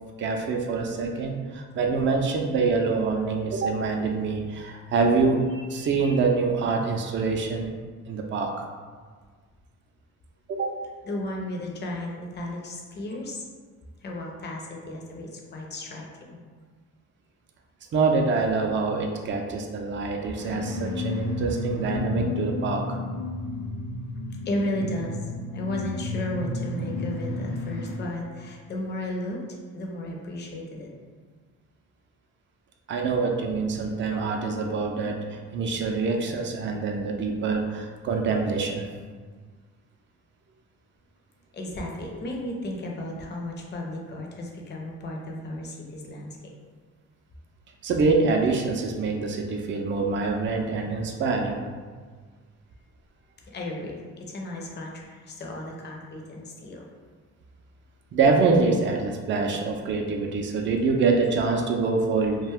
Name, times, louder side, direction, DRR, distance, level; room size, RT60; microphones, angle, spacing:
voice 1, 0.2-7.7 8.1-8.7 10.5-10.8 17.9-23.0 32.9-38.9 47.8-51.6 58.1-62.5, right 4 dB, 40° right, 2 dB, 0.4 m, -25 dB
voice 2, 11.1-13.4 14.0-16.4 24.4-29.4 29.7-30.9 41.5-46.4 53.5-56.9, left 1 dB, 35° left, 0 dB, 0.6 m, -34 dB
sound 1, 20.4-27.9, left 2 dB, 90° left, 0.7 m, -32 dB
2.4 x 2.2 x 3.4 m, 1.5 s
cardioid pair, 90°, 30 cm